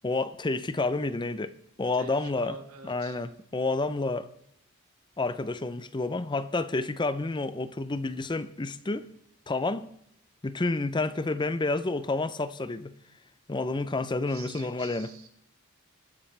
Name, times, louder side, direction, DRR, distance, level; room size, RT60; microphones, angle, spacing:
voice 1, 0.0-2.6 2.8-4.3 5.2-9.1 9.5-9.9 10.4-12.9 13.5-15.1, left 3 dB, 20° left, 0.6 m, -29 dB
voice 2, 2.0-3.2 14.3-15.3, right 4 dB, 75° right, 1.7 m, -46 dB
26.0 x 10.0 x 3.3 m
head